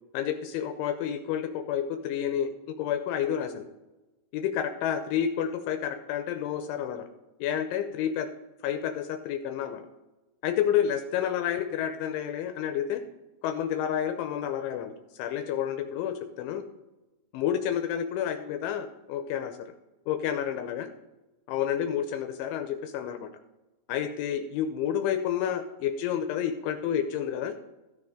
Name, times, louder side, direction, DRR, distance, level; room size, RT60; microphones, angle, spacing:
voice 1, 0.1-3.7 4.3-7.1 7.4-8.3 8.6-9.8 10.4-13.0 13.4-16.6 17.3-19.7 20.1-20.9 21.5-23.3 23.9-27.5, left 9 dB, 85° left, 7 dB, 3.0 m, -30 dB
13.0 x 6.7 x 4.9 m, 1.1 s
omnidirectional pair, 5.6 m